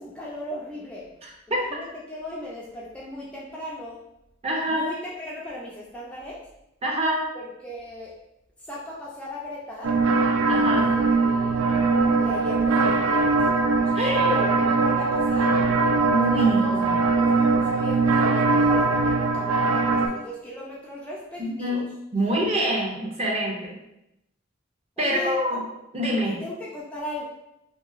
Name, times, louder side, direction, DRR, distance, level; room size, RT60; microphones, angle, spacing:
voice 1, 0.0-1.1 1.5-4.1 4.7-6.5 7.3-8.2 8.6-10.0 10.7-11.7 12.2-13.5 13.9-15.6 16.2-21.9 25.0-25.3 26.2-27.2, left 1 dB, 5° left, -5 dB, 0.3 m, -37 dB
voice 2, 1.2-1.7 4.4-4.9 6.8-7.3 10.5-10.9 13.9-14.5 16.1-16.8 21.4-21.8 22.1-23.7 25.0-25.6 25.9-26.4, equal, 30° right, -2 dB, 0.6 m, -25 dB
sound 1, 9.8-20.1, right 3 dB, 90° right, 0.3 m, -21 dB
2.8 x 2.7 x 2.4 m, 0.86 s
head